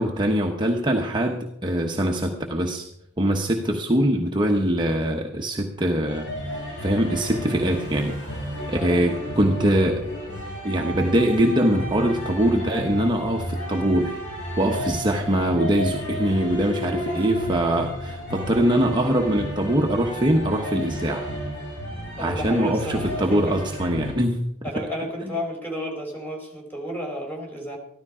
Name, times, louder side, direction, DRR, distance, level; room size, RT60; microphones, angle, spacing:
voice 1, 0.0-2.9 3.2-10.0 10.6-14.2 14.6-21.3 22.2-24.4 24.7-24.9 25.2-25.4, right 1 dB, 20° right, 1 dB, 1.0 m, -23 dB
sound 1, 6.1-24.1, equal, 55° left, 7.8 m, -33 dB
voice 2, 8.7-9.3 17.1-17.3 22.2-23.6 24.6-27.8, equal, 10° left, -1 dB, 4.2 m, -32 dB
14.5 x 12.5 x 4.9 m, 0.75 s
head